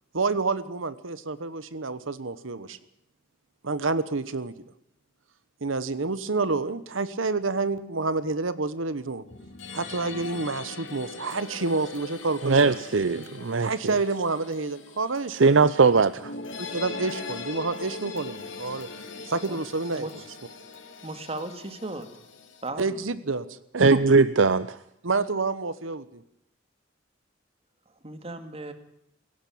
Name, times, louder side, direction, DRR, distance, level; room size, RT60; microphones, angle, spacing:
voice 1, 0.1-2.8 3.6-4.5 5.6-9.2 9.7-12.8 13.6-15.7 16.6-18.9 19.2-20.2 22.8-24.0 25.0-26.2, right 3 dB, 90° right, 14 dB, 1.1 m, -28 dB
sound 1, 9.3-22.7, left 4 dB, 75° left, 3.4 m, -41 dB
voice 2, 12.4-13.9 15.3-16.3 23.7-24.8, right 4 dB, 70° right, 14 dB, 0.7 m, -20 dB
voice 3, 20.0-20.3 21.0-22.1 22.6-23.0 28.0-28.7, right 2 dB, 30° right, 8 dB, 2.2 m, -36 dB
18.0 x 16.5 x 8.6 m, 0.78 s
head